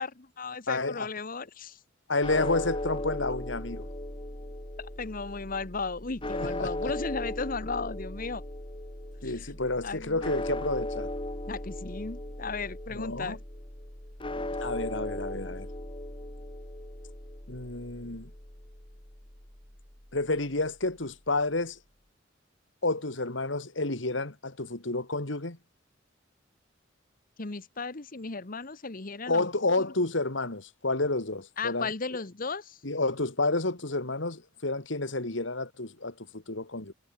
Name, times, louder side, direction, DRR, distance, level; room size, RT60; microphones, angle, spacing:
voice 1, 0.0-1.8 4.8-8.4 9.2-9.5 9.8-10.2 11.5-13.4 27.4-29.5 31.6-32.8, left 4 dB, 45° left, 1.2 m, -35 dB
voice 2, 0.7-1.1 2.1-3.9 6.4-6.9 9.2-11.1 12.9-13.4 14.6-15.7 17.5-18.3 20.1-21.8 22.8-25.6 29.3-31.9 32.8-36.9, left 2 dB, 75° left, 2.7 m, -30 dB
sound 1, 2.2-20.5, left 1 dB, 25° left, 2.9 m, -38 dB
head